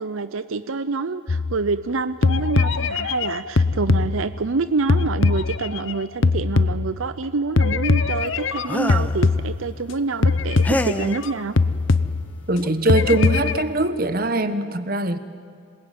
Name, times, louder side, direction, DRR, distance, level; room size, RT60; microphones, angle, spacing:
voice 1, 0.0-11.6, right 4 dB, 80° right, 12 dB, 0.6 m, -27 dB
sound 1, 1.3-1.9 2.2-4.6 4.9-7.2 7.6-9.9 10.2-11.3 11.6-12.6 12.9-13.6, left 3 dB, 70° left, 0.8 m, -21 dB
sound 2, 8.6-9.2 10.6-11.2 12.6-12.7 13.0-13.3, left 1 dB, 5° left, 0.7 m, -26 dB
voice 2, 12.5-15.2, right 2 dB, 45° right, 11 dB, 1.2 m, -22 dB
26.5 x 20.0 x 9.2 m, 2.2 s
head